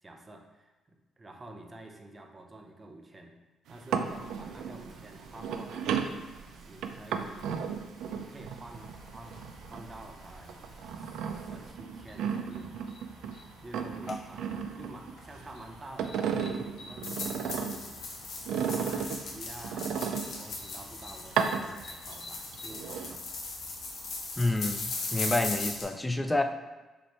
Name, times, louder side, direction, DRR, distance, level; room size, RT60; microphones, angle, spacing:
voice 1, 0.0-3.4 3.7-6.4 6.7-7.8 8.1-10.6 10.9-12.8 13.6-18.0 18.7-23.3, right 1 dB, 25° right, 3 dB, 0.6 m, -49 dB
sound 1, 3.7-10.1 10.5-13.4 13.7-15.5 15.8-17.9 18.5-20.7 21.2-22.2 22.5-23.2, right 7 dB, 80° right, 0.3 m, -34 dB
Rain, 4.0-11.7, right 2 dB, 55° right, 1.1 m, -54 dB
sound 2, 8.7-25.8, left 3 dB, 70° left, 1.0 m, -40 dB
voice 2, 24.4-26.4, left 2 dB, 10° left, 7 dB, 0.4 m, -29 dB
5.2 x 3.2 x 3.1 m, 1.2 s
cardioid pair, 90°, 0 cm